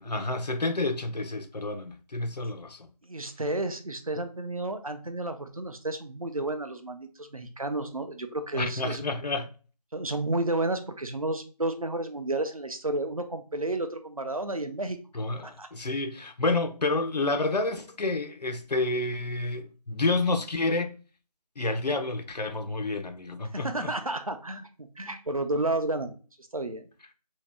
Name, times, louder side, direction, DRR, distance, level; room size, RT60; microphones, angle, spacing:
voice 1, 0.0-2.9 8.5-9.5 15.1-21.0 21.6-23.9, left 2 dB, 75° left, 0.5 m, -29 dB
voice 2, 3.1-9.0 9.9-15.0 15.4-15.7 23.5-26.2 26.5-26.9, right 2 dB, 60° right, 0.5 m, -31 dB
3.0 x 2.7 x 3.2 m
figure-of-eight pair, 180°, 21 cm